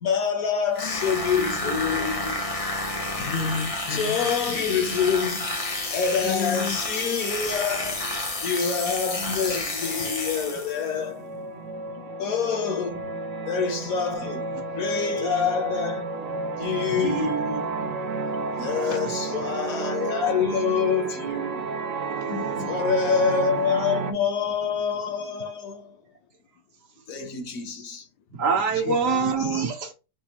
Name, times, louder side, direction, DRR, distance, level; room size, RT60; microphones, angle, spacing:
voice 1, 0.0-2.5 3.2-3.3 3.9-5.6 5.9-8.0 8.4-11.3 12.2-16.2 16.6-17.8 18.6-21.8 22.7-26.0 27.1-28.1, left 6 dB, 60° left, 1.1 m, -27 dB
sound 1, 0.7-10.9, left 2 dB, 40° left, 0.4 m, -30 dB
voice 2, 3.3-4.2 6.2-6.8 7.5-7.6 11.6-12.2 18.6-18.7 22.1-22.9 28.7-29.0 29.4-29.6, left 6 dB, 80° left, 1.3 m, -33 dB
sound 2, 8.3-8.4 8.7-24.1, right 4 dB, 75° right, 0.6 m, -32 dB
voice 3, 17.0-17.4 19.8-19.9 28.4-29.9, right 5 dB, 60° right, 1.1 m, -25 dB
6.0 x 2.3 x 2.9 m
omnidirectional pair, 1.8 m